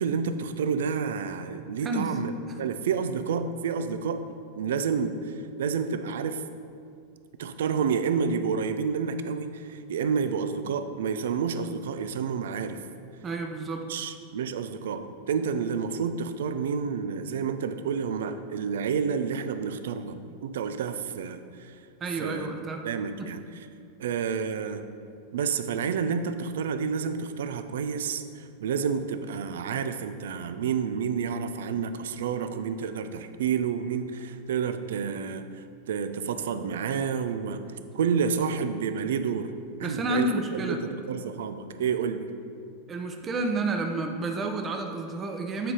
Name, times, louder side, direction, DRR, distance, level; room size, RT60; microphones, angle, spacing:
voice 1, 0.0-2.3 2.6-4.2 4.6-6.4 7.4-12.8 13.9-21.8 22.2-22.5 22.8-23.7 24.0-24.8 25.3-37.6 37.9-39.5 39.8-42.3, right 6 dB, 75° right, 10 dB, 0.4 m, -29 dB
voice 2, 1.8-2.2 13.2-14.1 22.0-22.9 23.2-23.4 39.8-40.8 42.9-45.7, right 2 dB, 30° right, 4 dB, 0.7 m, -30 dB
7.8 x 4.1 x 4.8 m, 2.3 s
hypercardioid pair, 100°, 0 cm